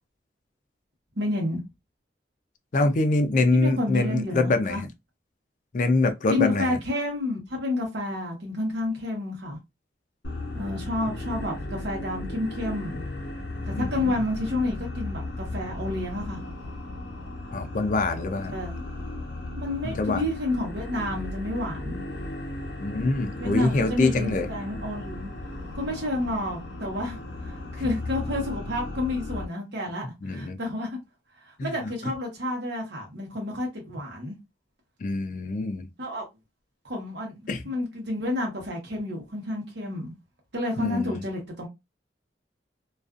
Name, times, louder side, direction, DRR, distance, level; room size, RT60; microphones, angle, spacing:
voice 1, 1.2-1.6 3.5-4.8 6.3-9.6 10.5-13.0 13.7-16.4 18.3-18.7 19.6-22.0 23.4-25.3 25.7-31.0 31.4-34.4 36.0-36.2 36.8-37.4 37.6-40.1 40.5-41.7, left 2 dB, 75° right, 1.0 m, -30 dB
voice 2, 2.7-4.9 5.7-6.8 13.7-14.2 17.5-18.5 19.8-20.3 22.8-24.5 30.2-30.6 31.6-31.7 35.0-35.9 37.5-37.6 40.8-41.2, left 2 dB, 45° left, 0.4 m, -25 dB
sound 1, 10.2-29.4, left 2 dB, 85° left, 0.8 m, -35 dB
2.4 x 2.3 x 2.4 m
head